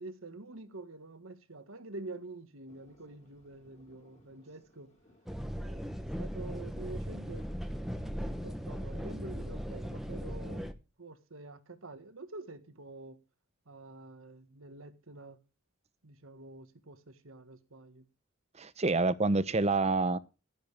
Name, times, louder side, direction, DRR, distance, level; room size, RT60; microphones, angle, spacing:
voice 1, 0.0-4.9 5.5-7.5 7.9-10.6 11.0-13.2 13.7-15.4 16.0-18.0, right 2 dB, 85° right, 1.7 m, -47 dB
Thunder, 2.7-9.8, equal, 35° left, 4.6 m, -61 dB
sound 1, 5.3-10.7, equal, ahead, 1.1 m, -38 dB
voice 2, 18.6-20.2, right 3 dB, 35° right, 0.8 m, -27 dB
13.0 x 10.5 x 3.4 m
head